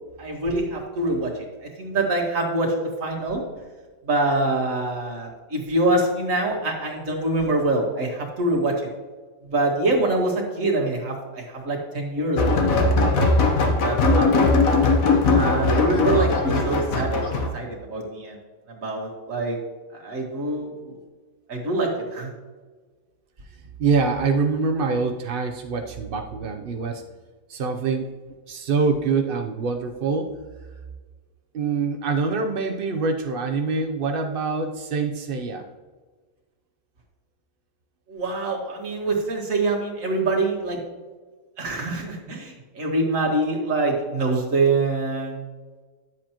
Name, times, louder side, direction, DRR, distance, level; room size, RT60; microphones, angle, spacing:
voice 1, 0.2-1.3 1.6-2.7 3.0-3.4 4.0-8.7 9.4-12.6 13.1-14.5 15.3-17.2 17.5-18.4 18.7-19.6 19.9-21.0 21.5-22.3 38.1-40.8 41.6-45.4, right 2 dB, 50° right, -1 dB, 2.0 m, -25 dB
sound 1, 12.4-17.5, left 3 dB, 55° left, 1.3 m, -19 dB
voice 2, 23.8-27.0 27.5-28.1 28.5-30.3 31.5-35.6, right 4 dB, 80° right, 4 dB, 0.5 m, -25 dB
11.0 x 7.4 x 2.9 m, 1.4 s
omnidirectional pair, 1.8 m